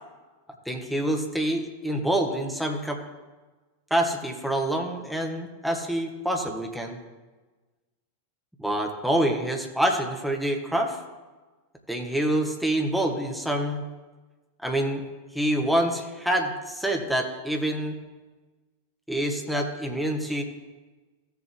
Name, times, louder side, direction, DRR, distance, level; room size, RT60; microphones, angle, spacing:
voice 1, 0.6-3.0 3.9-7.0 8.6-11.0 11.9-13.8 14.6-15.0 15.3-18.0 19.1-20.4, right 1 dB, ahead, 1 dB, 1.4 m, -26 dB
15.5 x 7.1 x 3.2 m, 1.2 s
figure-of-eight pair, 90°, 0 cm